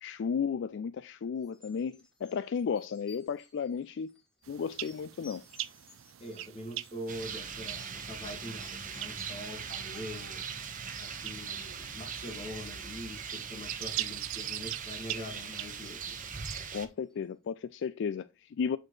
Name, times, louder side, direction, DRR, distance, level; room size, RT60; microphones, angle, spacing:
voice 1, 0.0-4.2 4.5-5.4 16.7-18.8, left 6 dB, 60° left, 0.4 m, -34 dB
sound 1, 1.4-17.2, left 2 dB, 5° left, 2.5 m, -61 dB
sound 2, 4.4-16.6, right 14 dB, 75° right, 0.5 m, -43 dB
voice 2, 6.2-10.4 11.0-16.2, left 1 dB, 30° left, 1.9 m, -43 dB
Rain, 7.1-16.9, right 6 dB, 40° right, 1.1 m, -40 dB
8.6 x 4.3 x 3.1 m
head